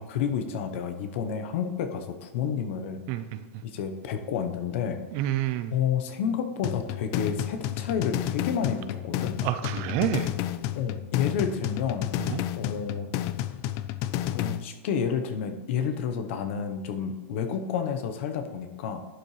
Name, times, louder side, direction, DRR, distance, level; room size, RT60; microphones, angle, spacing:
voice 1, 0.0-3.0 3.6-5.0 5.7-9.4 10.7-12.1 12.6-13.1 14.3-19.0, left 7 dB, 65° left, 8 dB, 1.0 m, -30 dB
voice 2, 3.1-3.4 5.1-5.7 9.4-10.3 12.3-12.4, right 12 dB, 50° right, 11 dB, 0.7 m, -28 dB
sound 1, 6.6-14.6, left 12 dB, 45° left, 0.4 m, -31 dB
11.5 x 7.6 x 3.3 m, 1.3 s
hypercardioid pair, 125°, 7 cm